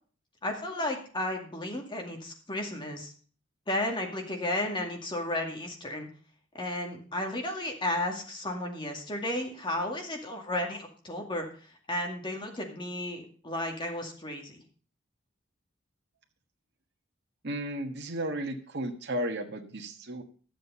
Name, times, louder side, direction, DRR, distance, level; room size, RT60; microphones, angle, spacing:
voice 1, 0.4-3.1 3.7-6.1 6.5-11.5 11.9-14.6, left 1 dB, 25° left, 2 dB, 2.2 m, -33 dB
voice 2, 17.4-20.2, right 1 dB, 60° right, 3 dB, 1.4 m, -34 dB
11.5 x 7.8 x 5.5 m, 0.42 s
head